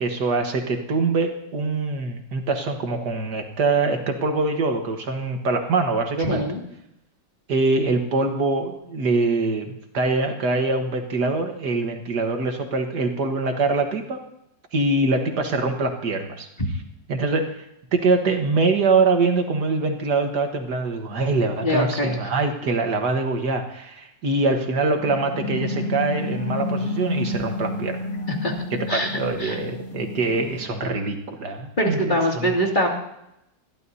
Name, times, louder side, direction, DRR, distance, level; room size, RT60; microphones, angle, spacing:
voice 1, 0.0-6.4 7.5-14.2 14.7-16.5 17.1-17.7 17.9-28.0 28.7-32.5, right 3 dB, 65° right, 4 dB, 1.9 m, -24 dB
voice 2, 6.2-6.6 21.6-22.2 28.3-28.5 28.9-29.1 29.4-29.6 31.8-32.9, equal, 25° left, 0 dB, 2.6 m, -23 dB
sound 1, 25.0-30.6, left 2 dB, 50° left, 2.6 m, -30 dB
22.0 x 15.0 x 2.8 m, 0.82 s
omnidirectional pair, 2.0 m